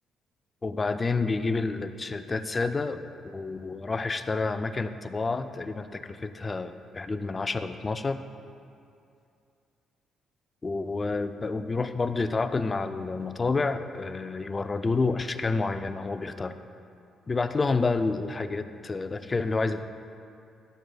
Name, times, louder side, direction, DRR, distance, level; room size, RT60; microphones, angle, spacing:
voice 1, 0.6-8.2 10.6-16.5 17.3-19.8, left 3 dB, 30° left, 10 dB, 0.4 m, -29 dB
13.0 x 7.5 x 2.3 m, 2.5 s
cardioid pair, 90°, 0 cm